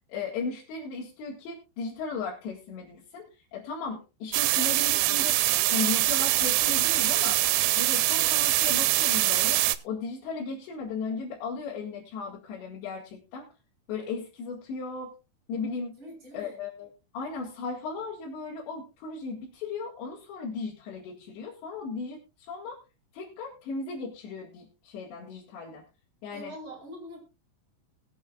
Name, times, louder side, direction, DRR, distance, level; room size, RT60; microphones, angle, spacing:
voice 1, 0.1-5.4 5.7-7.4 7.8-13.5 13.9-15.1 15.5-16.0 16.3-16.9 17.1-22.8 23.1-25.8 26.2-26.5, left 4 dB, 90° left, -4 dB, 4.1 m, -36 dB
sound 1, 4.3-9.8, right 17 dB, 90° right, 2.9 m, -24 dB
voice 2, 16.0-16.6 26.3-27.2, equal, 25° right, -1 dB, 5.2 m, -43 dB
21.5 x 7.9 x 2.4 m, 0.30 s
omnidirectional pair, 4.9 m